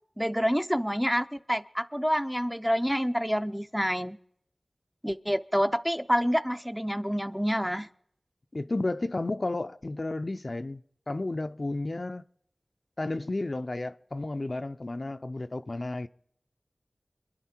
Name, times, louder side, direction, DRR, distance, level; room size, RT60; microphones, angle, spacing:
voice 1, 0.2-4.2 5.0-7.9, equal, ahead, 0.6 m, -27 dB
voice 2, 8.5-10.8 11.1-12.2 13.0-16.1, left 2 dB, 55° left, 0.5 m, -32 dB
26.5 x 11.0 x 4.4 m
wide cardioid pair, 55°, 0 cm